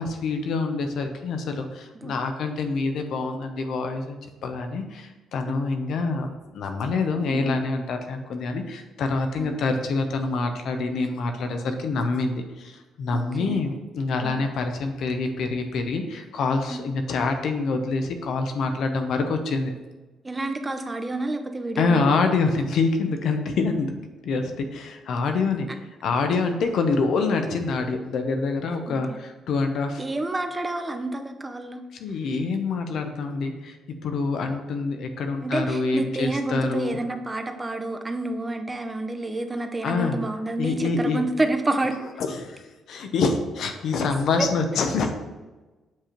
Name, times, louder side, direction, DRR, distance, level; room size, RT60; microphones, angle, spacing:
voice 1, 0.0-19.7 21.8-23.9 24.2-25.7 26.0-30.0 32.0-33.8 34.0-37.0 39.8-40.2 40.6-41.2 42.2-45.1, left 4 dB, 70° left, 6 dB, 0.8 m, -26 dB
voice 2, 13.1-13.6 14.2-14.4 16.7-16.8 20.2-22.2 28.9-29.0 30.0-31.8 35.4-41.9, right 2 dB, 20° right, 6 dB, 0.7 m, -29 dB
7.5 x 3.0 x 5.1 m, 1.2 s
cardioid pair, 90°, 0 cm